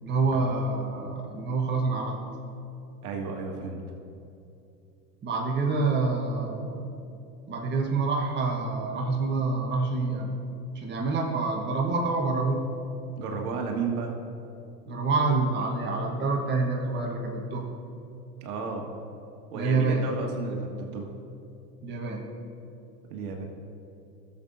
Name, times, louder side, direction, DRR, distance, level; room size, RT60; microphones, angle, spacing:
voice 1, 0.0-2.2 5.2-6.9 7.5-10.4 10.7-12.7 14.9-17.7 19.5-20.0 21.8-22.2, right 3 dB, 20° right, 0 dB, 1.2 m, -27 dB
voice 2, 3.0-3.8 13.2-14.1 18.4-18.9 19.5-21.1 23.1-23.4, right 4 dB, 65° right, 2 dB, 1.6 m, -33 dB
16.0 x 7.3 x 2.6 m, 2.7 s
hypercardioid pair, 90°, 48 cm